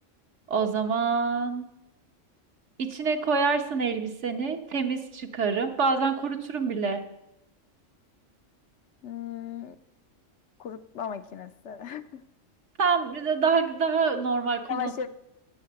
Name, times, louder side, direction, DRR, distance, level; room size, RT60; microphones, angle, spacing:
voice 1, 0.5-1.7 2.8-7.0 12.8-14.9, right 5 dB, 65° right, 6 dB, 1.4 m, -26 dB
voice 2, 9.0-9.8 10.6-12.2 14.7-15.1, left 8 dB, 65° left, 10 dB, 0.9 m, -36 dB
10.5 x 7.7 x 8.7 m, 0.86 s
omnidirectional pair, 1.3 m